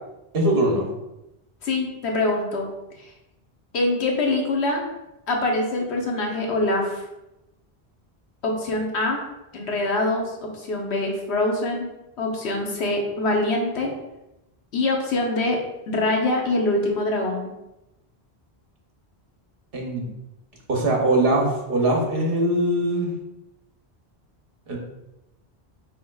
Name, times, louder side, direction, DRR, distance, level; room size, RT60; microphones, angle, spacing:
voice 1, 0.3-0.9 19.7-20.0 20.7-23.1 24.7-24.8, right 1 dB, 60° right, 0 dB, 1.1 m, -21 dB
voice 2, 1.6-2.7 3.0-3.1 3.7-4.9 5.3-7.0 8.4-9.2 9.5-11.9 12.2-13.9 14.7-15.6 15.9-17.5, left 2 dB, 85° left, 1 dB, 1.1 m, -24 dB
5.0 x 3.9 x 2.3 m, 0.93 s
omnidirectional pair, 1.1 m